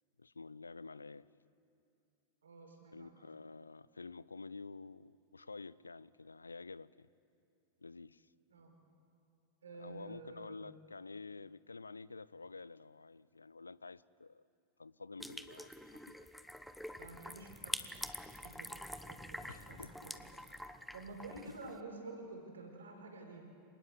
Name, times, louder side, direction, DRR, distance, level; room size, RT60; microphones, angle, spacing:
voice 1, 0.2-1.3 2.9-7.1 7.8-8.3 9.8-14.4 14.8-16.1 19.5-20.1 21.5-21.6, left 4 dB, 80° left, 0.5 m, -50 dB
voice 2, 2.4-3.1 8.5-8.7 9.6-10.7 17.0-18.1 18.4-20.1 20.9-23.5, right 3 dB, 70° right, 4.9 m, -50 dB
sound 1, 15.2-21.8, equal, ahead, 1.0 m, -46 dB
27.0 x 20.0 x 8.1 m
figure-of-eight pair, 90°, 0 cm